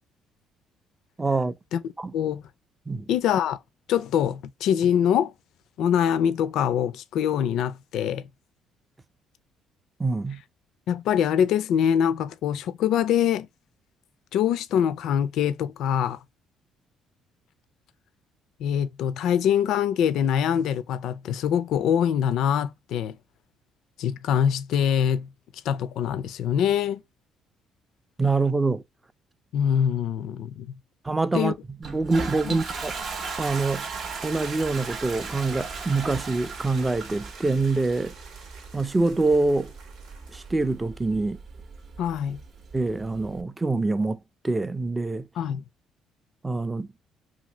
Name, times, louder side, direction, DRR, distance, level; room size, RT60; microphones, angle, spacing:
voice 1, 1.2-1.6 2.0-2.1 2.9-3.1 10.0-10.4 28.2-28.8 31.0-31.6 31.8-32.9 33.4-33.9 34.2-38.1 38.7-39.7 40.3-41.4 42.7-45.3 46.4-46.9, right 3 dB, 15° right, 0.3 m, -25 dB
voice 2, 3.1-3.6 3.9-5.3 5.8-8.3 10.9-13.5 14.3-16.2 18.6-23.2 24.0-25.3 25.6-27.0 29.5-30.7 31.3-31.5 32.4-32.6 42.0-42.4 45.4-45.6, left 9 dB, 75° left, 0.3 m, -24 dB
Toilet flush, 31.8-43.4, right 4 dB, 50° right, 0.6 m, -38 dB
sound 1, 32.6-40.7, right 5 dB, 90° right, 0.9 m, -44 dB
2.7 x 2.7 x 2.9 m
cardioid pair, 110°, 0 cm